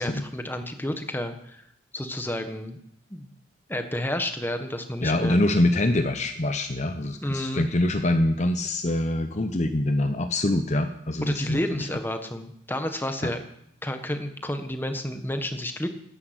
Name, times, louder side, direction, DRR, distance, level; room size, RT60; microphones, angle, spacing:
voice 1, 0.0-1.6 1.9-2.8 3.1-3.3 3.7-5.4 7.2-7.7 11.2-13.4 13.8-15.9, left 1 dB, 10° left, 7 dB, 1.3 m, -30 dB
voice 2, 5.0-11.9 13.2-13.3, left 1 dB, 40° left, 7 dB, 0.8 m, -24 dB
12.0 x 10.5 x 8.2 m, 0.73 s
head